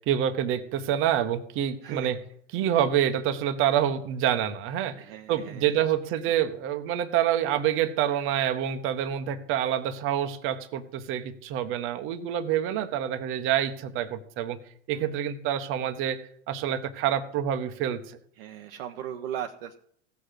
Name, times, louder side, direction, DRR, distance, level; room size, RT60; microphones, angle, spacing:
voice 1, 0.0-2.2 2.5-14.6 14.9-16.2 16.5-18.2, right 10 dB, 35° right, 8 dB, 1.4 m, -27 dB
voice 2, 1.8-2.2 5.0-5.8 6.2-6.3 14.9-15.1 18.4-19.8, right 10 dB, 50° right, 4 dB, 1.1 m, -38 dB
16.5 x 6.5 x 7.8 m, 0.64 s
figure-of-eight pair, 100°, 36 cm